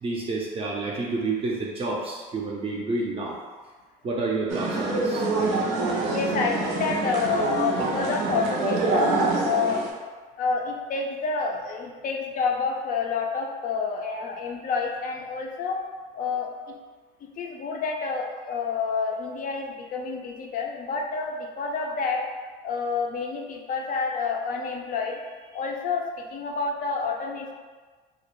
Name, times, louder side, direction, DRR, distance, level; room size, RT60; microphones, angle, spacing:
voice 1, 0.0-3.4 4.0-5.3, right 3 dB, 30° right, -3 dB, 0.4 m, -29 dB
sound 1, 4.5-9.9, right 3 dB, 85° right, 0.5 m, -25 dB
voice 2, 6.1-9.1 9.4-9.8 10.4-15.8 16.1-16.7 17.4-22.2 22.6-27.5, left 5 dB, 50° left, 2 dB, 0.4 m, -29 dB
2.2 x 2.0 x 2.9 m, 1.4 s
supercardioid pair, 95°, 18 cm